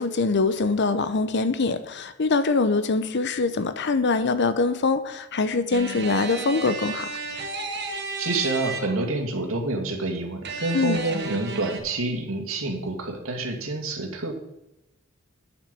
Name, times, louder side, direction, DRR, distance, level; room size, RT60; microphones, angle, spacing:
voice 1, 0.0-7.1 10.7-11.0, left 3 dB, 60° left, 11 dB, 0.7 m, -23 dB
sound 1, 5.7-9.2 10.4-11.8, right 3 dB, 55° right, 1.8 m, -33 dB
voice 2, 8.2-14.3, right 2 dB, 80° right, 4 dB, 2.1 m, -28 dB
9.3 x 7.4 x 6.8 m, 0.90 s
head